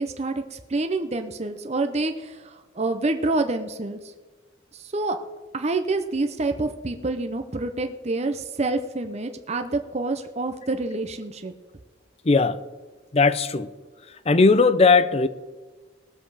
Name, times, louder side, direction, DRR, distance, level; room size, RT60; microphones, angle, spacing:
voice 1, 0.0-4.0 4.7-5.2 5.5-11.5, right 2 dB, 35° right, 7 dB, 0.8 m, -27 dB
voice 2, 12.2-12.6 13.1-13.7 14.3-15.3, left 4 dB, 35° left, 14 dB, 0.6 m, -18 dB
19.0 x 7.7 x 4.9 m, 1.3 s
head